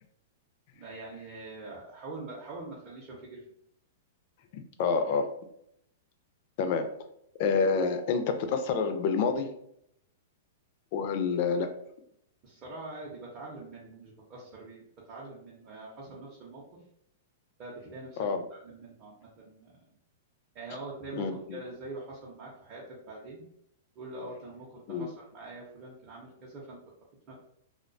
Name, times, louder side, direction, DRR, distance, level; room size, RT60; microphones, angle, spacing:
voice 1, 0.7-3.4 12.4-14.8 15.1-16.6 17.6-19.8 20.5-23.4 24.0-26.8 27.3-27.4, right 2 dB, 35° right, -4 dB, 0.5 m, -44 dB
voice 2, 4.5-5.3 6.6-7.0 7.4-9.5 10.9-11.7 18.2-18.4 21.1-21.6 24.9-25.1, left 5 dB, 50° left, 7 dB, 0.3 m, -28 dB
2.3 x 2.1 x 2.5 m, 0.73 s
hypercardioid pair, 140°, 0 cm